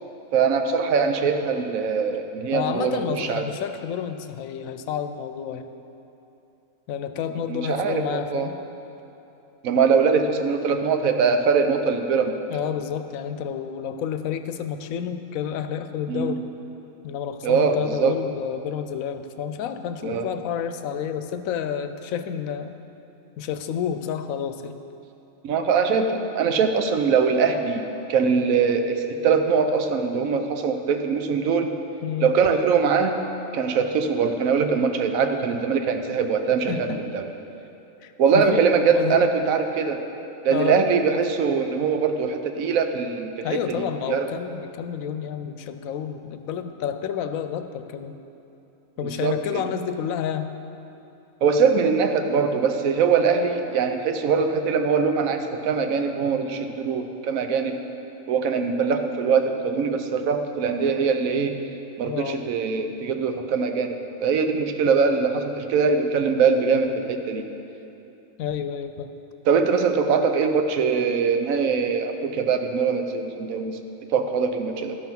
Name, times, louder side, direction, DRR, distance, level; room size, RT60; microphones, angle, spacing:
voice 1, 0.3-3.5 7.5-8.5 9.6-12.3 16.1-16.3 17.4-18.1 20.0-20.2 25.4-27.8 28.1-31.7 32.2-33.1 33.5-36.7 37.1-37.3 38.2-40.0 40.4-44.3 49.0-49.6 51.4-57.8 58.3-61.6 62.0-67.5 69.5-73.8 74.1-75.0, right 5 dB, 85° right, 6 dB, 1.1 m, -22 dB
voice 2, 2.5-5.7 6.9-8.6 12.5-16.4 17.0-22.7 23.4-24.8 32.0-32.3 36.7-37.0 38.0-39.2 40.5-40.9 43.4-48.1 49.0-50.5 62.0-62.4 68.4-69.1, left 8 dB, 90° left, 9 dB, 1.0 m, -30 dB
12.5 x 5.7 x 5.9 m, 2.9 s
omnidirectional pair, 1.4 m